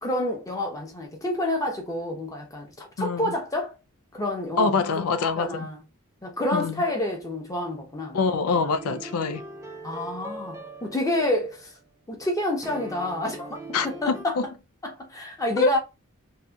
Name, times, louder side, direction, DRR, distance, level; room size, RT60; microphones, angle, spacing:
voice 1, 0.0-3.8 4.1-4.8 5.4-5.8 6.2-8.3 9.8-11.7 12.1-13.6 13.8-14.4 14.8-15.8, left 1 dB, 15° left, 0.7 m, -28 dB
voice 2, 3.0-3.3 4.6-5.7 6.5-6.8 8.1-9.4 13.7-14.4 15.6-15.7, left 4 dB, 85° left, 0.4 m, -25 dB
sound 1, 8.5-11.8 12.6-14.2, right 2 dB, 15° right, 0.4 m, -41 dB
2.7 x 2.6 x 2.3 m
head